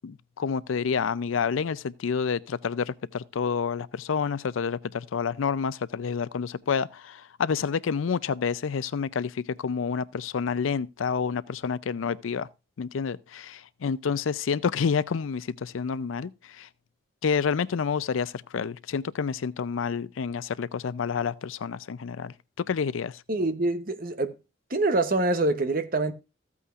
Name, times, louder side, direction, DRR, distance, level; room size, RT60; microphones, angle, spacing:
voice 1, 0.0-12.5 12.8-16.7 17.2-23.2, left 6 dB, 85° left, 0.4 m, -29 dB
voice 2, 23.3-24.4 24.7-26.1, right 2 dB, 45° right, 0.9 m, -25 dB
14.5 x 8.3 x 2.4 m
head